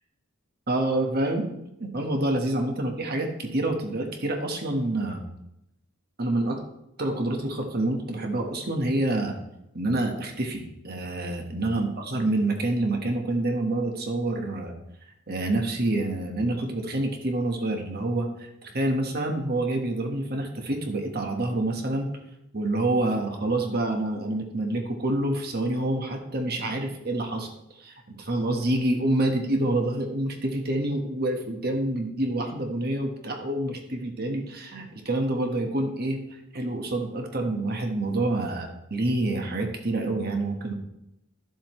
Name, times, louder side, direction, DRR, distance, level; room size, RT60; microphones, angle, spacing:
voice 1, 0.7-1.5 1.8-5.2 6.2-6.6 7.0-9.4 9.7-14.7 15.3-22.1 22.5-27.5 27.8-36.2 36.5-40.7, right 1 dB, 50° right, 3 dB, 1.4 m, -27 dB
12.5 x 7.5 x 3.2 m, 0.86 s
head